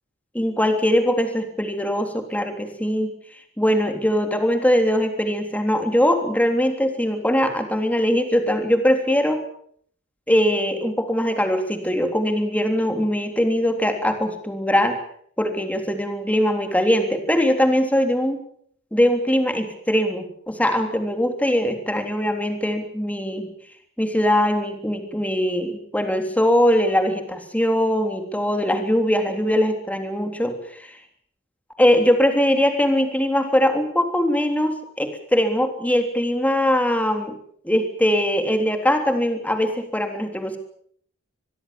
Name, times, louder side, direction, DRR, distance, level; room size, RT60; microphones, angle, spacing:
voice 1, 0.4-3.1 3.6-9.4 10.3-15.0 15.4-18.4 18.9-23.5 24.0-31.0 31.8-37.4 37.6-40.6, equal, 10° left, 6 dB, 3.5 m, -21 dB
24.0 x 21.5 x 7.3 m, 0.63 s
head